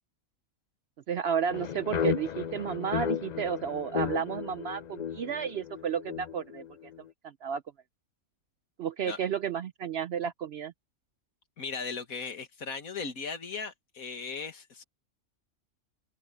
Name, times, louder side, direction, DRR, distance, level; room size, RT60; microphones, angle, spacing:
voice 1, 1.1-6.6 7.2-7.6 8.8-10.7, right 7 dB, 60° right, 0.7 m, -32 dB
sound 1, 1.5-7.0, left 8 dB, 55° left, 0.4 m, -34 dB
voice 2, 11.6-14.8, left 5 dB, 75° left, 2.2 m, -37 dB
omnidirectional pair, 1.5 m